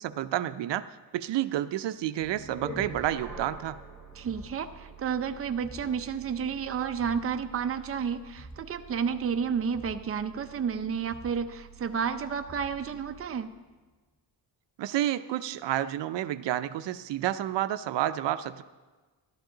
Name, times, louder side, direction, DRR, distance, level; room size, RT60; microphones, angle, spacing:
voice 1, 0.0-3.8 14.8-18.6, right 12 dB, 80° right, 12 dB, 0.5 m, -30 dB
sound 1, 2.2-13.3, right 2 dB, ahead, 3.5 m, -46 dB
voice 2, 4.2-13.5, right 7 dB, 35° right, 7 dB, 0.6 m, -31 dB
15.5 x 12.0 x 3.8 m, 1.3 s
wide cardioid pair, 145°, 42 cm